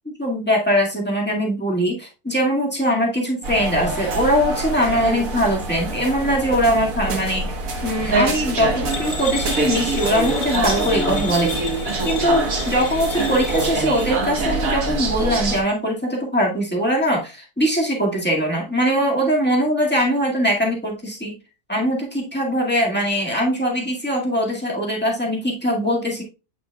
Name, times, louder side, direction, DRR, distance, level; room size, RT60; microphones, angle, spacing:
voice 1, 0.2-7.6 7.8-11.5 11.8-21.4 21.7-26.2, equal, 5° left, -3 dB, 1.8 m, -21 dB
sound 1, 3.4-15.6, right 3 dB, 60° right, 1.6 m, -25 dB
sound 2, 8.9-14.1, left 4 dB, 35° left, 1.2 m, -32 dB
8.3 x 6.0 x 2.3 m, 0.30 s
omnidirectional pair, 1.6 m